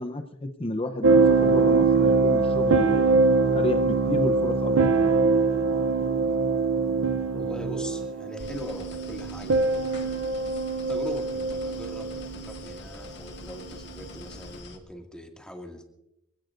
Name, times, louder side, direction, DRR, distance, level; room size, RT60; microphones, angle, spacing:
voice 1, 0.0-3.2 3.5-5.1, left 1 dB, 30° left, 6 dB, 0.8 m, -32 dB
sound 1, 1.0-12.8 13.6-13.9, right 4 dB, 75° right, 0.7 m, -23 dB
voice 2, 7.3-9.7 10.9-15.9, equal, 5° left, 1 dB, 2.2 m, -41 dB
sound 2, 8.4-14.8, left 2 dB, 55° left, 1.7 m, -44 dB
26.0 x 17.0 x 2.6 m, 0.86 s
head